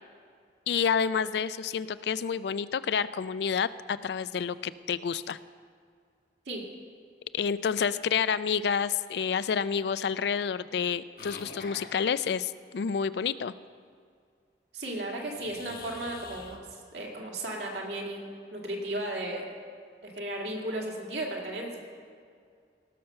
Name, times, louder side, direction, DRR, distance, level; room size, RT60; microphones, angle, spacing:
voice 1, 0.7-5.4 7.3-13.5, left 6 dB, 70° left, 16 dB, 0.3 m, -29 dB
sound 1, 11.2-11.9 15.3-16.6, left 4 dB, 50° left, 1.0 m, -44 dB
voice 2, 14.7-19.5 20.0-21.8, right 1 dB, 75° right, -1 dB, 2.2 m, -35 dB
18.0 x 6.7 x 5.7 m, 2.2 s
head